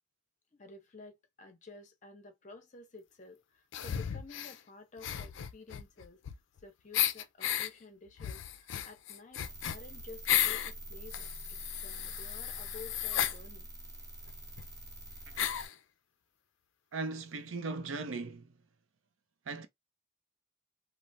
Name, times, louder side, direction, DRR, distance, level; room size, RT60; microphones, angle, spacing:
voice 1, 0.5-6.2 6.6-13.7, left 3 dB, 40° left, 0.6 m, -52 dB
sound 1, 3.7-4.6 5.0-6.6 6.9-7.7 8.2-10.7 11.1-13.4 14.3-14.4 14.6-14.7 15.4-15.7, left 11 dB, 70° left, 0.4 m, -34 dB
sound 2, 9.4-15.7, right 1 dB, 20° right, 0.8 m, -46 dB
voice 2, 16.9-18.6 19.5-19.7, right 3 dB, 85° right, 0.5 m, -38 dB
3.2 x 2.0 x 2.6 m
head